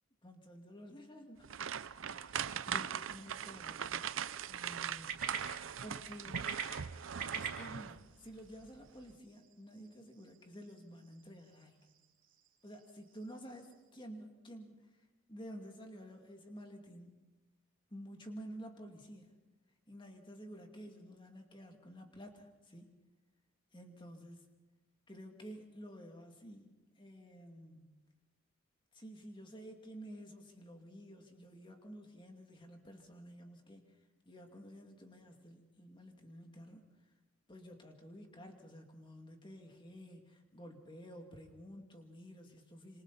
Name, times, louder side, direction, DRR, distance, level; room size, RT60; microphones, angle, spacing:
voice 1, 0.2-1.5 2.1-4.1 4.4-5.2 5.8-6.5 7.3-11.9 12.6-14.9 15.3-17.2 17.9-19.3 19.9-22.9 23.7-24.6 25.1-28.0 28.9-34.0 34.2-36.8 37.5-43.0, equal, 25° left, 3 dB, 2.4 m, -51 dB
sound 1, 1.4-8.1 8.5-8.7 9.1-9.2, right 8 dB, 70° right, 0.6 m, -40 dB
sound 2, 2.2-13.9, right 6 dB, 40° right, 3.0 m, -49 dB
27.0 x 26.0 x 4.2 m, 1.1 s
head